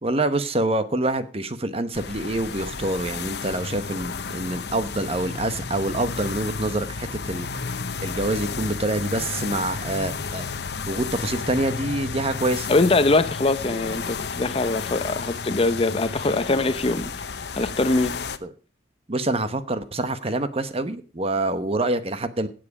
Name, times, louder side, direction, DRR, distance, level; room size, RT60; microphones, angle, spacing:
voice 1, 0.0-7.5 8.0-10.5 10.9-12.7 13.7-13.8 18.4-18.5 19.1-22.5, right 2 dB, 35° right, 1.0 m, -26 dB
sound 1, 1.9-18.4, left 5 dB, 65° left, 0.9 m, -32 dB
voice 2, 12.7-17.1 17.5-18.2, left 2 dB, 30° left, 0.7 m, -22 dB
17.0 x 7.7 x 4.8 m
head